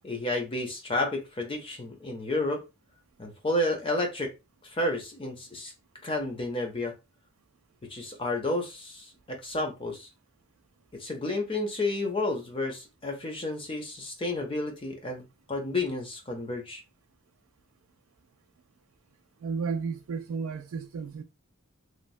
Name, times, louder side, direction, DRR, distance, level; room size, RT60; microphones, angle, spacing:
voice 1, 0.0-2.6 3.2-4.3 4.7-5.7 6.0-6.9 7.9-10.1 10.9-15.2 15.5-16.8, left 2 dB, 25° left, 0.6 m, -31 dB
voice 2, 19.4-21.2, right 5 dB, 85° right, 0.3 m, -33 dB
3.1 x 2.1 x 2.6 m
head